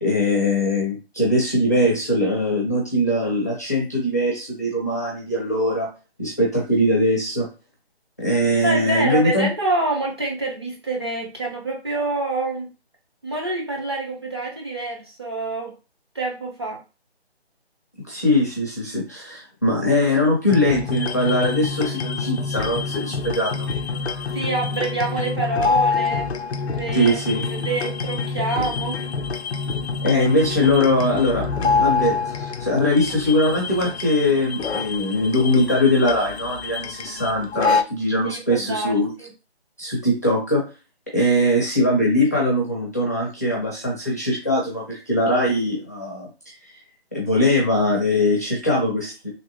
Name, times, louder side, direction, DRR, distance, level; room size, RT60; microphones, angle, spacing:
voice 1, 0.0-5.9 6.2-7.5 8.2-9.5 18.1-23.7 26.9-27.4 30.0-39.1 39.8-40.6 41.1-46.7 47.1-49.3, left 1 dB, 15° left, -3 dB, 0.5 m, -21 dB
voice 2, 8.6-12.7 13.2-15.7 16.1-16.8 24.3-26.3 26.7-29.0 38.2-38.9 39.2-39.3, right 2 dB, 25° right, -1 dB, 0.7 m, -26 dB
sound 1, 20.5-37.8, left 4 dB, 75° left, 0.5 m, -26 dB
3.3 x 2.9 x 3.0 m, 0.31 s
figure-of-eight pair, 155°, 32 cm